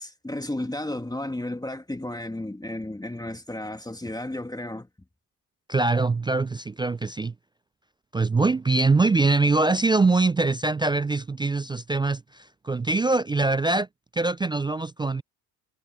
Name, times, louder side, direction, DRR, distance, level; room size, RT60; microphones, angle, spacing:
voice 1, 0.0-4.9, left 1 dB, 10° left, 2.4 m, -33 dB
voice 2, 5.7-7.3 8.1-13.9 14.1-15.2, right 3 dB, 10° right, 0.3 m, -23 dB
hypercardioid pair, 60°, 46 cm